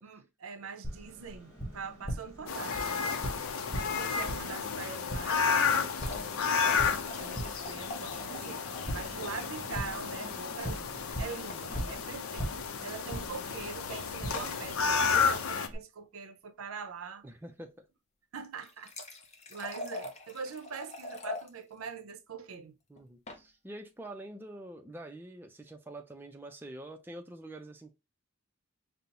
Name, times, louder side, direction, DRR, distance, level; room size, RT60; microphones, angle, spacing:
voice 1, 0.0-3.2 3.7-8.7 8.9-17.2 18.3-19.2 19.5-22.8, right 6 dB, 80° right, 0.6 m, -43 dB
Tap, 0.8-15.8, equal, 15° left, 1.4 m, -42 dB
sound 1, 2.5-15.7, left 6 dB, 85° left, 0.6 m, -32 dB
sound 2, 5.9-9.1 9.3-9.4 9.7-9.8 11.5-11.9 12.8-13.0 14.3-14.6 18.4-21.5 23.0-23.4, left 2 dB, 30° left, 0.7 m, -44 dB
voice 2, 17.2-17.8 22.9-27.9, right 1 dB, 10° right, 0.4 m, -46 dB
5.2 x 2.0 x 2.8 m
head